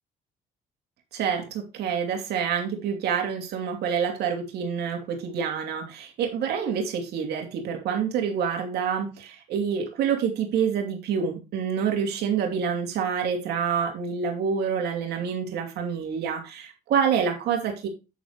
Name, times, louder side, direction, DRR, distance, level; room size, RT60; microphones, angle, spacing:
voice 1, 1.1-17.9, right 7 dB, 75° right, 3 dB, 2.7 m, -27 dB
9.2 x 8.2 x 3.3 m, 0.29 s
cardioid pair, 110°, 17 cm